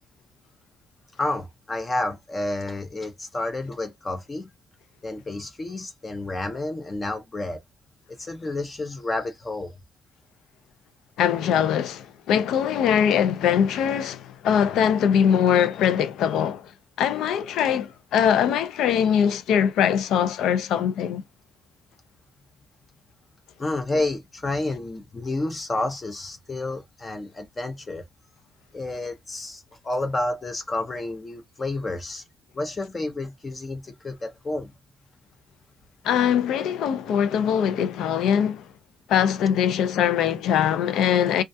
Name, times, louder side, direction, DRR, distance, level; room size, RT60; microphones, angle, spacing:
voice 1, 1.2-4.5 5.0-7.6 8.2-9.7 23.6-28.0 28.7-32.2 32.5-34.7, left 2 dB, 30° left, 0.5 m, -30 dB
voice 2, 11.2-16.7 17.0-21.2 36.0-38.7 39.1-41.4, left 8 dB, 80° left, 0.4 m, -22 dB
2.3 x 2.2 x 2.6 m
cardioid pair, 90°, 0 cm